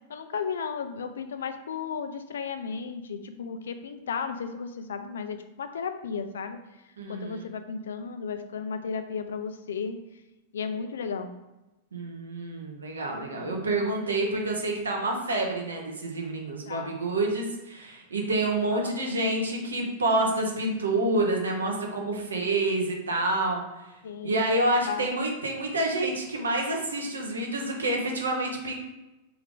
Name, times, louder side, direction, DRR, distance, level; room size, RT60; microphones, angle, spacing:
voice 1, 0.1-6.6 7.1-10.0 10.5-11.3 13.2-13.5 16.7-17.0 18.7-19.2 24.0-24.5 24.9-25.1, left 6 dB, 80° left, 8 dB, 0.4 m, -34 dB
voice 2, 7.0-7.5 11.9-23.6 24.2-28.7, right 2 dB, 90° right, 1 dB, 1.0 m, -28 dB
3.4 x 3.4 x 3.7 m, 1.0 s
hypercardioid pair, 105°, 0 cm